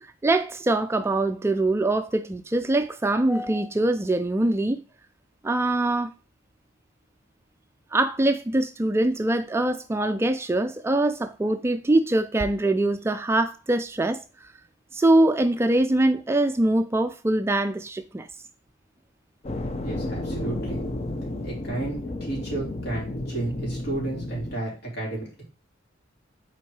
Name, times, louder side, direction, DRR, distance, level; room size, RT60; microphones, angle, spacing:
voice 1, 0.0-4.8 5.4-6.1 7.9-14.5 14.9-18.3, right 2 dB, 15° right, 0.3 m, -23 dB
sound 1, 19.4-24.5, left 1 dB, 35° left, 0.6 m, -32 dB
voice 2, 19.8-20.9 21.4-25.4, right 2 dB, 55° left, 3.4 m, -32 dB
5.7 x 4.4 x 4.7 m
head